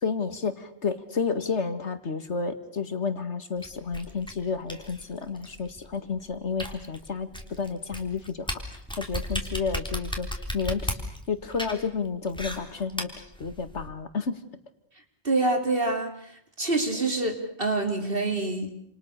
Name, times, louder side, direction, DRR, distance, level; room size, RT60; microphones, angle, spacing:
voice 1, 0.0-8.6 9.0-10.3 10.5-11.0 11.3-14.4, left 5 dB, 80° left, 10 dB, 2.3 m, -31 dB
sound 1, 3.6-13.9, equal, 5° left, 3.8 m, -36 dB
voice 2, 15.2-16.3 16.6-18.7, right 2 dB, 55° right, 5 dB, 3.8 m, -26 dB
29.5 x 28.0 x 6.7 m, 0.66 s
omnidirectional pair, 1.2 m